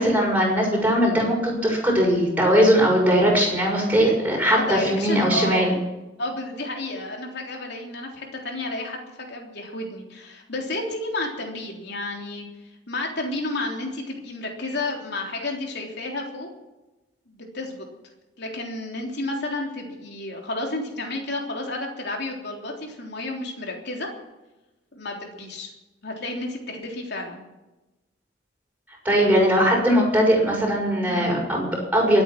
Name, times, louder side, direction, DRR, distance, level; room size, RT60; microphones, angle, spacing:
voice 1, 0.0-5.7 29.0-32.2, equal, 10° right, -2 dB, 6.3 m, -20 dB
voice 2, 4.5-5.7 6.2-12.5 12.9-16.5 17.3-17.9 18.4-24.1 24.9-25.7 26.0-27.4 31.0-31.3, left 2 dB, 60° left, 1 dB, 3.5 m, -31 dB
23.5 x 9.0 x 6.1 m, 1.0 s
head